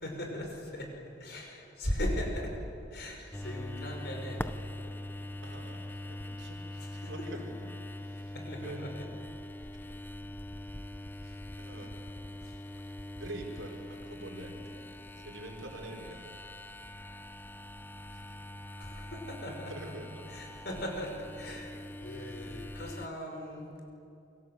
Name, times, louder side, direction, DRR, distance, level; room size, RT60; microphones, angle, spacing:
voice 1, 0.0-0.9 1.2-2.6 2.9-5.0 6.8-7.4 8.3-9.0 9.8-10.0 12.4-12.6 18.8-19.7 20.3-23.7, equal, 55° left, 2 dB, 5.8 m, -38 dB
voice 2, 3.2-3.5 5.4-7.7 8.0-8.8 9.6-9.7 11.2-12.0 13.2-14.9 15.2-16.3 18.1-18.4 19.5-20.5, right 1 dB, 85° right, 0 dB, 4.7 m, -46 dB
sound 1, 3.3-23.1, left 1 dB, 10° left, 0.5 m, -43 dB
28.0 x 24.5 x 8.0 m, 2.8 s
head